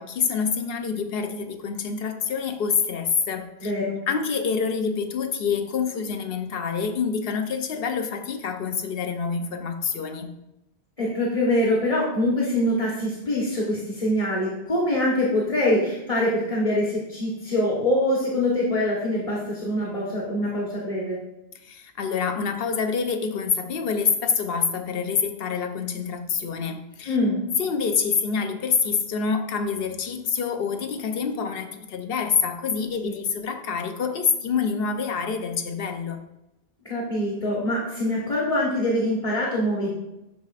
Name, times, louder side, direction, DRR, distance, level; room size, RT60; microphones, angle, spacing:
voice 1, 0.0-3.7 4.1-10.3 21.6-27.2 27.6-36.2, left 6 dB, 70° left, 7 dB, 0.9 m, -26 dB
voice 2, 3.6-4.0 11.0-21.2 27.1-27.4 33.0-33.1 36.8-39.9, left 1 dB, 35° left, -5 dB, 1.3 m, -24 dB
12.5 x 4.2 x 2.5 m, 0.90 s
omnidirectional pair, 1.1 m